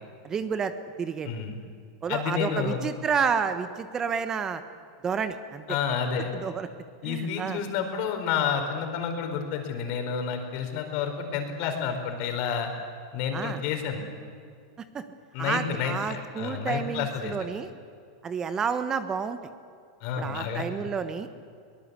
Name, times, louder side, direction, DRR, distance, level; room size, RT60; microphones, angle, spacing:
voice 1, 0.2-0.7 1.0-1.3 2.0-4.6 5.0-5.8 6.4-6.7 7.0-7.6 13.3-13.6 14.9-15.0 15.4-17.7 18.2-19.4 20.2-21.3, right 6 dB, 25° right, 10 dB, 1.3 m, -30 dB
voice 2, 1.2-1.5 2.1-2.8 5.7-6.3 7.0-12.7 13.1-14.0 15.3-17.5 20.0-20.6, left 7 dB, 55° left, 5 dB, 4.6 m, -30 dB
23.0 x 19.5 x 8.3 m, 2.3 s
supercardioid pair, 130°, 2 cm